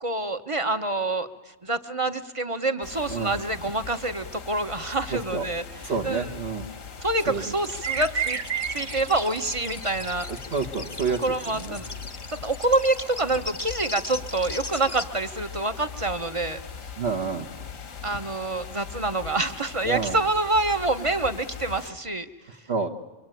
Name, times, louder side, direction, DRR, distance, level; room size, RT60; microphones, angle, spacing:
voice 1, 0.0-1.3 1.6-5.6 6.0-6.3 7.0-8.4 8.7-10.3 11.2-11.9 12.3-16.6 18.0-22.3, right 2 dB, 25° right, 9 dB, 1.2 m, -26 dB
sound 1, 2.8-21.9, left 6 dB, 85° left, 1.8 m, -41 dB
voice 2, 5.1-5.5 5.8-6.7 7.3-7.4 10.5-11.8 17.0-17.5 19.8-20.2 22.7-22.9, right 5 dB, 50° right, 1 dB, 1.6 m, -29 dB
sound 2, 5.3-5.4 5.7-5.9 7.3-10.1, right 7 dB, 75° right, 1.5 m, -31 dB
sound 3, 7.6-15.0, left 3 dB, 20° left, 1.0 m, -39 dB
25.5 x 24.5 x 9.2 m, 1.1 s
omnidirectional pair, 1.3 m